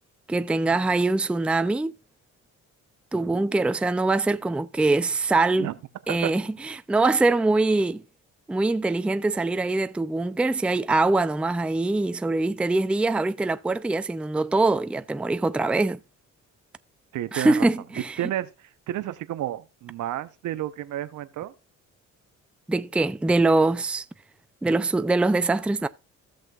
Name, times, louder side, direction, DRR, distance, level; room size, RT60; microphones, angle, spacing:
voice 1, 0.3-2.0 3.1-5.7 6.1-8.0 8.5-16.0 17.3-18.2 22.7-24.1 24.6-25.9, right 2 dB, 5° right, 0.4 m, -23 dB
voice 2, 17.1-17.7 18.2-21.5, right 13 dB, 75° right, 0.8 m, -31 dB
16.0 x 6.4 x 2.4 m
cardioid pair, 90°, 30 cm